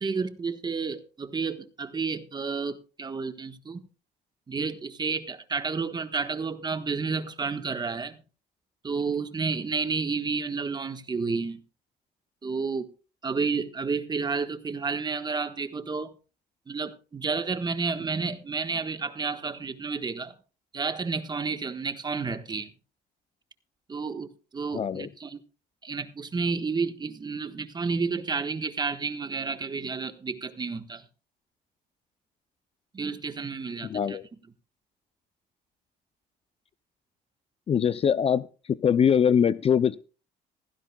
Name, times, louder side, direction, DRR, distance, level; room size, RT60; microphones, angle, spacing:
voice 1, 0.0-3.9 4.5-8.2 8.8-11.6 12.4-12.9 13.2-16.1 16.7-20.3 20.7-22.7 23.9-25.4 25.8-31.0 32.9-34.2, right 4 dB, 25° right, 1.4 m, -31 dB
voice 2, 24.7-25.1 33.8-34.2 37.7-40.0, left 8 dB, 35° left, 0.5 m, -23 dB
16.0 x 16.0 x 2.3 m
cardioid pair, 110°, 17 cm